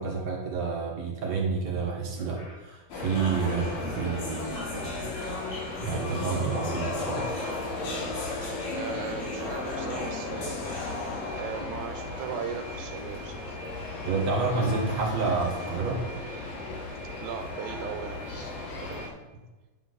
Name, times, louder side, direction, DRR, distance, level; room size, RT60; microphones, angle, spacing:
voice 1, 0.0-4.9 5.8-7.3 14.0-16.0, right 4 dB, 60° right, -1 dB, 2.2 m, -29 dB
sound 1, 1.2-3.4 3.7-4.1 4.7-6.2 6.5-11.8 13.5-13.6 13.8-13.9 14.2-16.8, equal, 55° left, 0.4 m, -51 dB
sound 2, 2.9-19.1, left 2 dB, 70° left, 3.7 m, -35 dB
sound 3, 4.0-5.5 5.9-6.9 7.8-9.3 9.7-10.7, equal, 35° left, 3.1 m, -43 dB
voice 2, 7.8-8.1 8.7-10.9 11.3-13.6 17.2-19.1, right 8 dB, 85° right, 6 dB, 2.4 m, -39 dB
10.5 x 7.2 x 3.9 m, 1.1 s
omnidirectional pair, 4.2 m